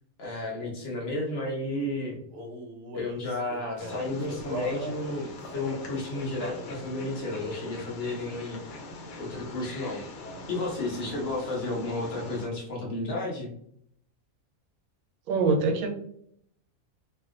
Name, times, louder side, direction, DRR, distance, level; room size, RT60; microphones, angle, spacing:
voice 1, 0.2-2.2 2.9-5.3 5.5-8.6 9.2-10.0 10.5-13.5, left 2 dB, 50° left, -3 dB, 1.0 m, -32 dB
Male singing, 2.3-6.7 7.4-7.9 8.5-8.8 9.0-10.0, equal, 65° right, 0.6 m, -40 dB
Wild animals, 3.8-12.5, left 1 dB, 80° left, 1.1 m, -43 dB
voice 2, 15.3-15.9, right 4 dB, 90° right, 6 dB, 1.1 m, -24 dB
3.1 x 2.7 x 2.4 m, 0.69 s
omnidirectional pair, 1.5 m